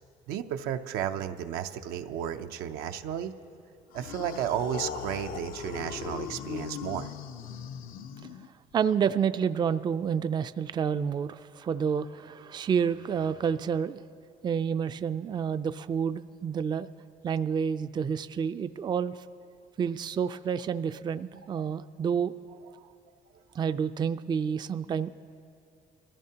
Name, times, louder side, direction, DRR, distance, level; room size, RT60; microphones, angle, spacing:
voice 1, 0.3-3.3 3.9-7.1, right 10 dB, 90° right, 7 dB, 0.6 m, -33 dB
sound 1, 3.9-8.7, left 8 dB, 70° left, 0.6 m, -39 dB
voice 2, 8.7-14.0 14.4-16.9 17.2-19.2 19.8-22.3 23.5-25.1, right 7 dB, 30° right, 12 dB, 0.3 m, -29 dB
23.0 x 14.5 x 2.8 m, 2.5 s
cardioid pair, 95°, 15 cm